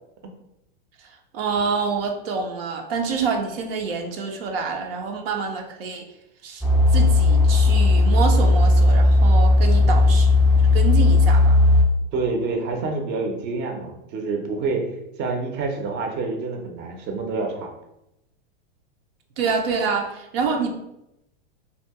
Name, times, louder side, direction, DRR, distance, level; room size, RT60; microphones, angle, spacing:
voice 1, 1.3-6.0 6.4-6.6 6.9-10.3 10.7-11.6 19.4-20.7, right 5 dB, 75° right, 2 dB, 0.6 m, -26 dB
sound 1, 6.6-11.8, left 2 dB, ahead, 0.3 m, -16 dB
voice 2, 9.8-10.2 12.1-14.9 15.2-17.7, right 3 dB, 35° right, 3 dB, 0.6 m, -27 dB
2.7 x 2.4 x 3.5 m, 0.86 s
hypercardioid pair, 120°, 29 cm